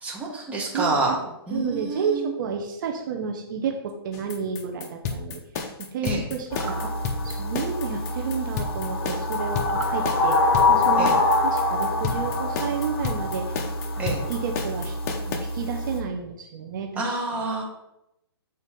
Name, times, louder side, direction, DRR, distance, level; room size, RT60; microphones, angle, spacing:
voice 1, 0.0-1.2 1.5-2.3 6.0-6.2 11.0-11.1 14.0-14.2 17.0-17.6, right 2 dB, 10° right, -3 dB, 1.3 m, -27 dB
voice 2, 0.7-5.4 5.9-6.9 7.2-10.4 10.7-13.6 14.0-15.0 15.3-17.5, right 6 dB, 50° right, 3 dB, 0.8 m, -31 dB
sound 1, 4.1-15.4, left 5 dB, 40° left, 0.9 m, -31 dB
sound 2, 6.5-16.0, left 2 dB, 70° left, 1.2 m, -25 dB
sound 3, 6.5-6.8 9.6-10.0, right 5 dB, 90° right, 1.0 m, -39 dB
6.9 x 3.9 x 3.7 m, 0.85 s
hypercardioid pair, 150°, 13 cm